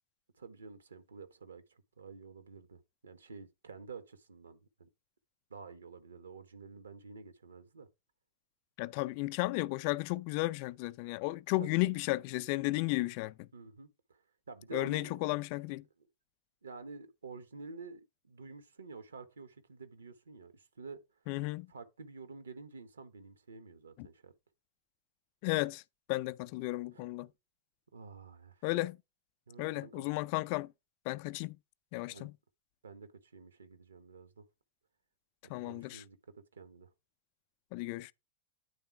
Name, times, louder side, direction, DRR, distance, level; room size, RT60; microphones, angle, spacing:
voice 1, 0.4-4.9 5.5-7.9 11.6-11.7 13.5-14.2 14.5-15.3 16.6-21.0 21.7-24.3 26.9-27.1 27.9-28.6 29.5-30.1 32.1-32.3 32.8-34.4 35.5-36.9, right 4 dB, 70° right, 0.8 m, -50 dB
voice 2, 8.8-13.3 14.7-15.8 21.3-21.7 24.0-24.1 25.4-25.8 26.1-27.3 28.6-29.0 29.6-30.7 31.1-31.6 31.9-32.3 35.5-36.0 37.7-38.1, left 21 dB, 45° left, 0.3 m, -34 dB
9.6 x 3.6 x 4.5 m
figure-of-eight pair, 90°, 0 cm